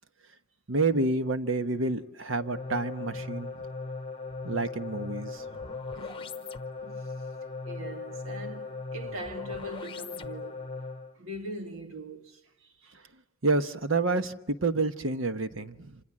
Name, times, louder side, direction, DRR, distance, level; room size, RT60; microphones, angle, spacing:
voice 1, 0.7-3.5 4.4-5.4 13.4-16.0, right 3 dB, 70° right, 1.2 m, -28 dB
sound 1, 2.4-11.2, left 3 dB, 25° left, 0.9 m, -38 dB
voice 2, 5.9-6.5 6.8-7.3 7.6-10.7 11.2-12.4, right 1 dB, 90° right, 2.1 m, -42 dB
29.0 x 26.5 x 7.4 m
head